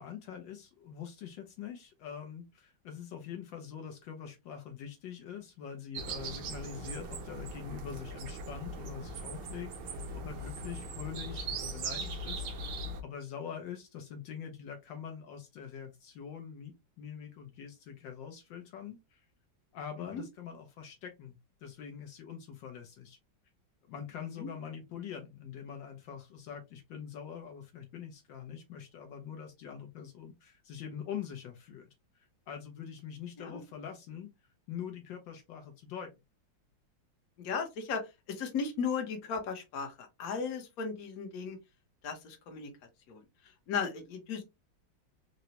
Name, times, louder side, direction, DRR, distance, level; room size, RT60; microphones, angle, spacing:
voice 1, 0.0-19.2 19.7-23.2 23.9-31.9 32.1-34.3 34.7-36.1, left 8 dB, 75° left, 1.3 m, -44 dB
sound 1, 5.9-13.0, right 2 dB, 70° right, 1.3 m, -40 dB
voice 2, 37.4-41.6 42.0-42.7 43.1-43.2 43.7-44.4, left 5 dB, 55° left, 1.2 m, -36 dB
3.9 x 2.1 x 2.8 m
omnidirectional pair, 2.1 m